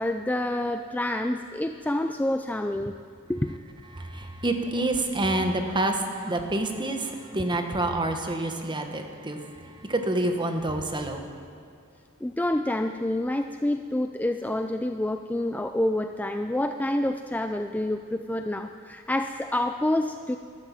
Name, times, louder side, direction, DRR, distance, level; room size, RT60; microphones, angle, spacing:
voice 1, 0.0-3.0 3.3-3.6 12.2-20.4, left 1 dB, 10° left, 7 dB, 0.4 m, -28 dB
voice 2, 3.9-11.2, right 1 dB, 20° right, 5 dB, 1.3 m, -28 dB
13.0 x 12.5 x 7.5 m, 2.4 s
head